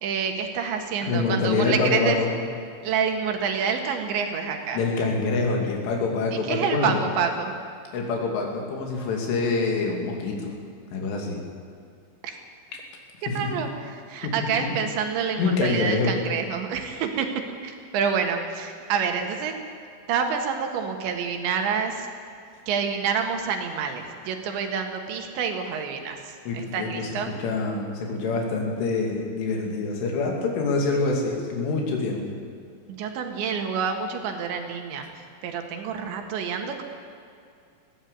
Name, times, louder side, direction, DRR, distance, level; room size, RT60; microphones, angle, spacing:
voice 1, 0.0-2.2 2.8-4.8 6.3-7.6 12.2-12.4 13.2-17.3 17.6-19.5 20.1-22.1 22.7-27.3 32.9-35.1 35.4-36.8, right 6 dB, 75° right, 5 dB, 3.8 m, -28 dB
voice 2, 1.0-2.3 4.7-7.0 7.9-10.5 10.9-11.4 13.3-13.4 14.2-14.7 15.4-16.2 26.5-32.3, left 3 dB, 85° left, 1 dB, 5.3 m, -26 dB
20.0 x 16.0 x 8.3 m, 2.4 s
omnidirectional pair, 5.5 m